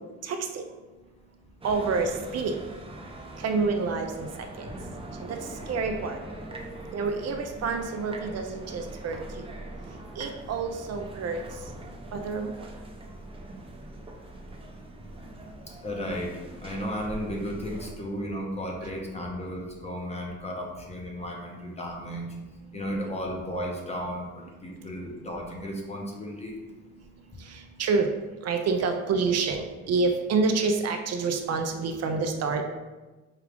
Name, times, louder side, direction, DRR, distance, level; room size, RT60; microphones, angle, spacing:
voice 1, 0.2-0.6 1.6-2.6 3.4-4.7 5.3-5.4 5.7-6.2 6.9-9.4 10.2-11.4 12.1-12.5 27.4-28.1 28.4-32.6, right 4 dB, 60° right, 5 dB, 0.5 m, -28 dB
sound 1, 1.6-17.9, right 1 dB, 20° right, 0.6 m, -42 dB
voice 2, 15.8-16.3 16.6-22.3 22.7-26.5, equal, 20° left, 0 dB, 0.9 m, -34 dB
4.7 x 2.4 x 3.4 m, 1.2 s
cardioid pair, 90°, 30 cm